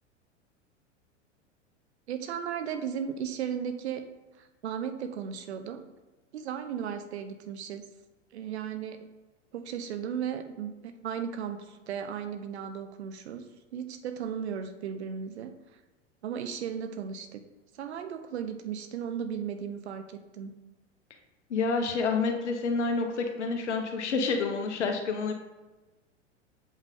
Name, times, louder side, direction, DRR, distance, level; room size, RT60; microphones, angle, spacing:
voice 1, 2.1-4.1 4.4-5.9 6.3-7.9 8.3-9.1 9.5-13.4 13.7-15.5 16.2-17.4 17.7-20.5, right 8 dB, 60° right, 9 dB, 0.8 m, -35 dB
voice 2, 21.5-25.3, left 4 dB, 65° left, 5 dB, 1.1 m, -28 dB
7.1 x 5.4 x 3.6 m, 1.2 s
figure-of-eight pair, 90°, 37 cm